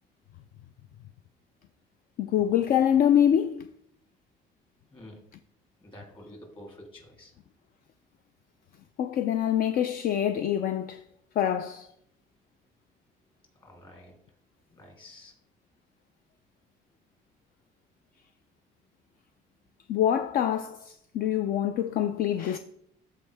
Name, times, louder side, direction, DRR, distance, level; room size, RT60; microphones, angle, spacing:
voice 1, 2.2-3.7 9.0-11.0 11.4-11.9 19.9-22.6, left 10 dB, 60° left, 0.5 m, -25 dB
voice 2, 5.8-7.3 13.5-14.2 14.7-15.3, left 1 dB, 30° left, 3.0 m, -49 dB
13.5 x 4.6 x 3.4 m
cardioid pair, 110°, 17 cm